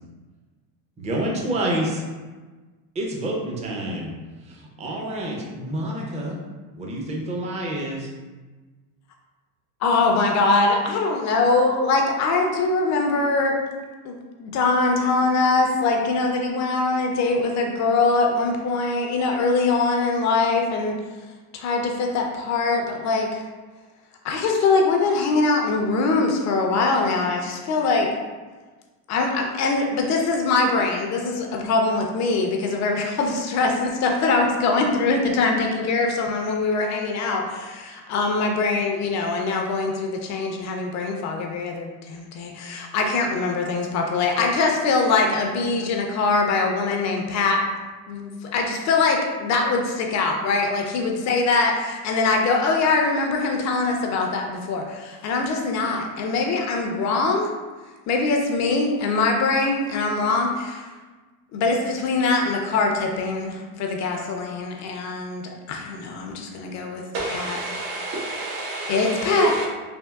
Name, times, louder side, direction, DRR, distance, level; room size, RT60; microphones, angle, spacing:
voice 1, 1.0-2.0 3.0-4.1 4.4-6.4 6.7-8.1, right 1 dB, 15° right, -1 dB, 0.4 m, -28 dB
voice 2, 9.8-13.6 14.0-21.0 21.5-23.4 24.2-28.1 29.1-47.6 48.1-57.5 58.1-60.9 61.5-67.0 67.3-67.6 68.9-69.5, left 3 dB, 40° left, 2 dB, 0.4 m, -22 dB
voice 3, 67.1-69.7, right 2 dB, 80° right, -2 dB, 1.0 m, -29 dB
3.5 x 2.3 x 2.3 m, 1.3 s
supercardioid pair, 105°, 44 cm